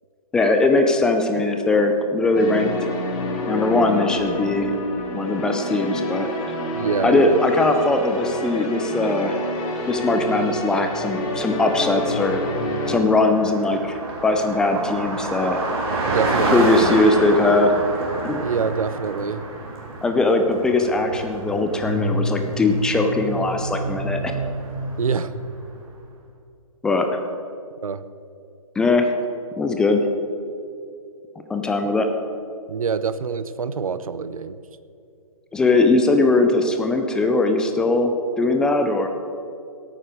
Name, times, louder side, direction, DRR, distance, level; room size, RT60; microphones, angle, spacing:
voice 1, 0.3-2.7 3.5-4.7 5.1-6.3 7.0-9.4 9.9-12.4 12.9-15.6 16.4-17.8 18.2-18.4 20.0-24.3 26.8-27.2 28.8-29.1 29.6-30.0 31.5-32.1 35.5-38.1 38.4-39.1, left 2 dB, 5° left, 5 dB, 0.3 m, -20 dB
sound 1, 2.3-12.9, left 1 dB, 25° left, 1.9 m, -28 dB
voice 2, 6.8-7.4 16.0-16.7 18.4-19.4 25.0-25.3 27.8-28.0 32.7-34.6, right 6 dB, 70° right, 14 dB, 0.8 m, -25 dB
Car passing by, 9.6-25.7, right 2 dB, 40° right, 3.3 m, -28 dB
16.5 x 9.0 x 5.1 m, 2.6 s
figure-of-eight pair, 135°, 19 cm